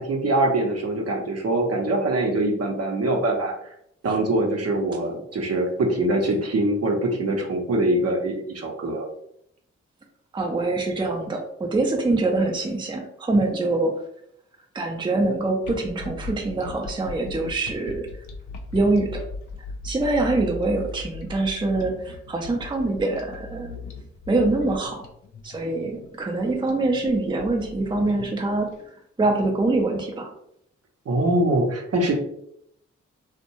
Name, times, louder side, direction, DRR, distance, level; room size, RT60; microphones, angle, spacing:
voice 1, 0.0-3.7 4.0-9.0 31.1-32.1, right 1 dB, 50° right, 1 dB, 0.7 m, -23 dB
voice 2, 10.3-13.9 14.7-18.1 18.7-19.2 19.8-23.8 24.3-25.0 25.4-28.7 29.2-30.3, right 2 dB, 15° right, 2 dB, 0.5 m, -24 dB
sound 1, 15.6-28.7, left 2 dB, 65° left, 0.6 m, -38 dB
2.5 x 2.1 x 2.9 m, 0.73 s
supercardioid pair, 40°, 32 cm